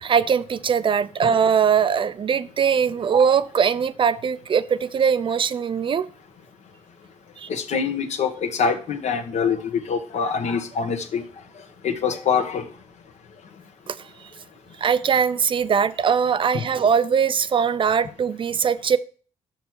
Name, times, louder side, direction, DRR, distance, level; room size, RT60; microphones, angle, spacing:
voice 1, 0.0-6.1 7.4-7.5 13.9-14.0 14.8-19.0, right 7 dB, 40° right, 0.5 m, -21 dB
voice 2, 7.5-11.2 11.8-12.7 16.5-16.6, left 6 dB, 65° left, 1.3 m, -24 dB
6.0 x 5.3 x 6.3 m
cardioid pair, 100°, 13 cm